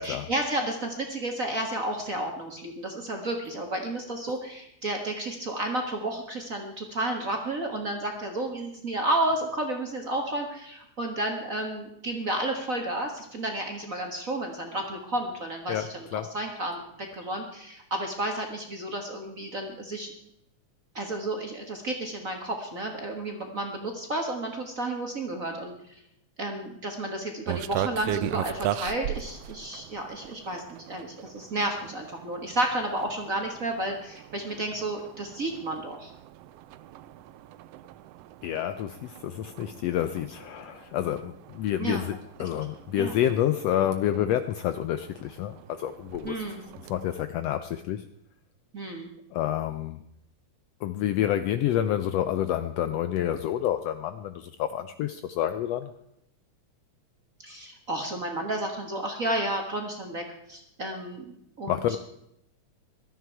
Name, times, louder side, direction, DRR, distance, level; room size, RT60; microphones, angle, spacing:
voice 1, 0.0-16.1 16.3-16.8 17.1-20.1 20.9-25.7 26.4-36.1 41.8-42.0 42.4-42.7 43.0-43.1 46.2-46.6 48.7-49.1 57.4-60.2 60.5-61.2 61.6-62.0, right 1 dB, 35° right, 2 dB, 1.5 m, -31 dB
voice 2, 15.7-16.3 38.4-46.6 46.9-48.1 49.3-50.0 50.8-55.9 61.7-62.0, left 11 dB, 75° left, 11 dB, 1.5 m, -28 dB
sound 1, 27.5-47.2, right 12 dB, 80° right, 1.4 m, -39 dB
16.0 x 13.0 x 4.6 m, 0.78 s
omnidirectional pair, 3.4 m